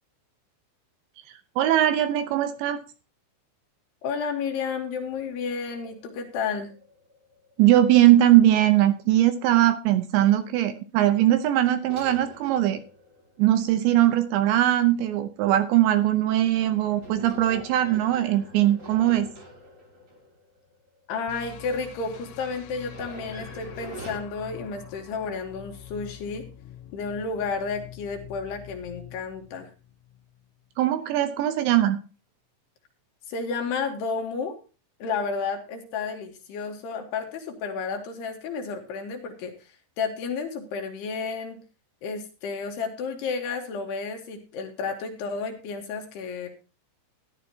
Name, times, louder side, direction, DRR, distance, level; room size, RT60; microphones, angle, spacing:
voice 1, 1.6-2.8 7.6-12.8 13.4-19.3 30.8-32.0, right 13 dB, 80° right, 10 dB, 2.8 m, -20 dB
voice 2, 4.0-6.7 21.1-26.5 26.9-29.7 33.3-34.6 35.0-41.6 42.0-46.5, left 5 dB, 65° left, 4 dB, 3.0 m, -32 dB
sound 1, 5.0-8.5 9.0-9.1 11.9-14.2 16.4-21.2 22.0-24.2, right 1 dB, 35° right, 1.2 m, -46 dB
sound 2, 21.3-30.4, left 11 dB, 80° left, 3.3 m, -45 dB
14.0 x 11.5 x 2.8 m, 0.32 s
omnidirectional pair, 5.7 m